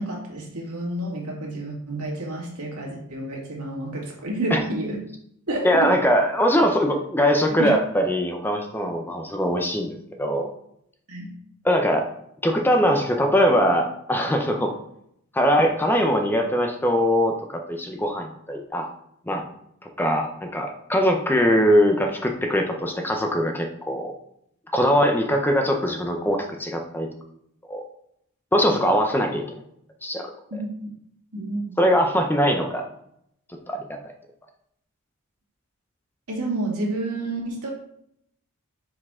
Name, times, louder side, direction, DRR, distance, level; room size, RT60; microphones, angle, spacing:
voice 1, 0.0-5.0 5.5-5.9 7.6-7.7 11.1-11.4 28.6-28.8 30.5-30.9 31.3-31.8 36.3-37.7, right 1 dB, 80° right, -1 dB, 2.0 m, -30 dB
voice 2, 5.6-10.5 11.6-12.0 12.4-14.7 15.3-18.9 19.3-19.4 20.0-24.1 24.7-27.1 27.7-27.8 28.5-29.4 30.0-30.3 31.8-32.8 33.7-34.1, equal, 10° left, 3 dB, 0.6 m, -21 dB
6.2 x 4.9 x 3.7 m, 0.72 s
head